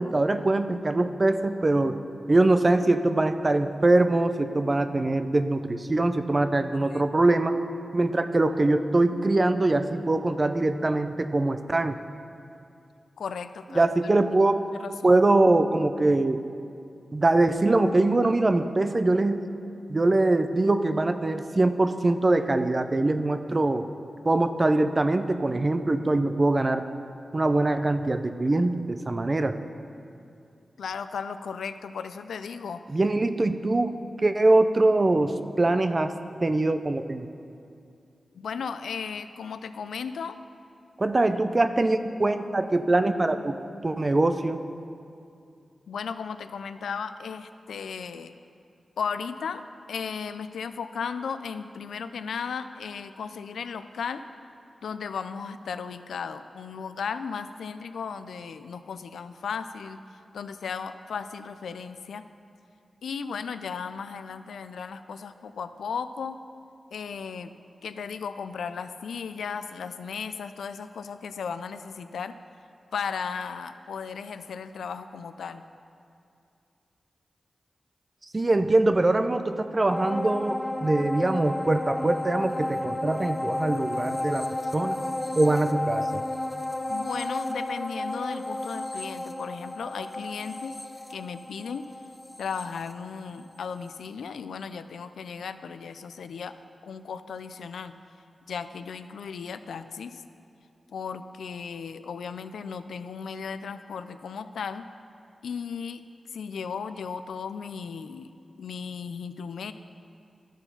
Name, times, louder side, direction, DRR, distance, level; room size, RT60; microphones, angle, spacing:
voice 1, 0.0-2.0 2.3-7.5 7.9-12.0 13.8-14.5 15.0-16.4 17.1-19.4 19.9-23.9 24.2-26.9 27.3-29.6 32.9-34.0 34.2-36.1 36.4-37.3 41.0-44.6 78.3-85.0 85.4-86.2, right 2 dB, 40° right, 9 dB, 0.5 m, -23 dB
voice 2, 6.7-7.0 13.2-13.9 14.8-15.2 30.8-32.8 38.3-40.4 45.9-48.3 49.0-49.6 49.9-54.2 54.8-60.0 60.3-62.2 63.0-66.4 66.9-67.5 67.8-72.4 72.9-75.6 86.9-90.8 91.1-91.8 92.4-96.5 96.8-97.9 98.5-100.2 100.9-104.8 105.4-106.0 106.3-108.3 108.6-109.7, left 6 dB, 90° left, 11 dB, 0.3 m, -35 dB
sound 1, 79.9-93.6 94.0-94.1, left 2 dB, 20° left, 0.6 m, -32 dB
12.5 x 4.5 x 5.6 m, 2.6 s
cardioid pair, 40°, 0 cm